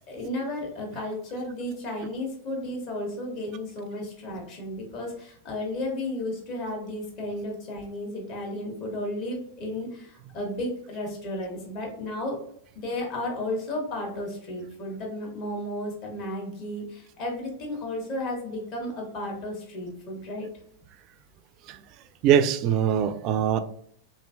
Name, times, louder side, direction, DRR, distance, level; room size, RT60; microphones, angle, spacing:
voice 1, 0.1-12.4 12.7-20.5, left 1 dB, 50° left, 0 dB, 1.3 m, -33 dB
voice 2, 22.2-23.6, right 9 dB, 45° right, 12 dB, 0.3 m, -22 dB
3.0 x 2.7 x 2.5 m, 0.65 s
hypercardioid pair, 105°, 0 cm